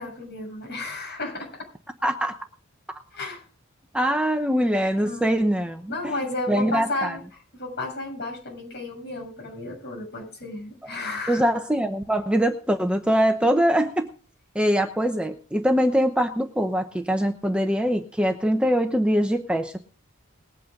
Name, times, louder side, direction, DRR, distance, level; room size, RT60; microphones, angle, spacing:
voice 1, 0.0-1.6 3.1-3.4 5.0-5.4 5.9-7.2 7.5-11.4, left 2 dB, 55° left, 0 dB, 7.3 m, -33 dB
voice 2, 2.0-2.3 3.9-6.1 6.5-7.2 11.3-14.1 14.5-19.8, equal, 5° right, 5 dB, 0.8 m, -23 dB
20.5 x 8.5 x 3.8 m, 0.40 s
head